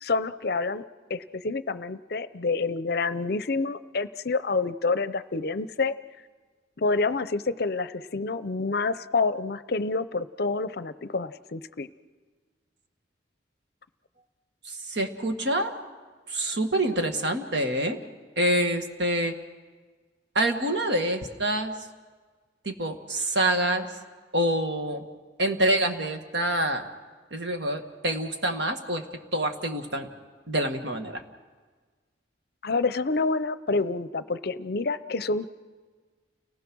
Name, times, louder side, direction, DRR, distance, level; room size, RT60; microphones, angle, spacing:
voice 1, 0.0-0.8 1.1-6.0 6.8-11.9 32.6-35.5, left 3 dB, 55° left, 14 dB, 0.6 m, -28 dB
voice 2, 14.6-15.7 16.3-18.0 18.4-19.3 20.3-21.8 22.6-23.9 24.3-25.0 25.4-26.9 27.3-29.0 29.3-30.1 30.5-31.2, right 1 dB, 65° right, 6 dB, 1.7 m, -26 dB
29.5 x 19.0 x 6.2 m, 1.4 s
head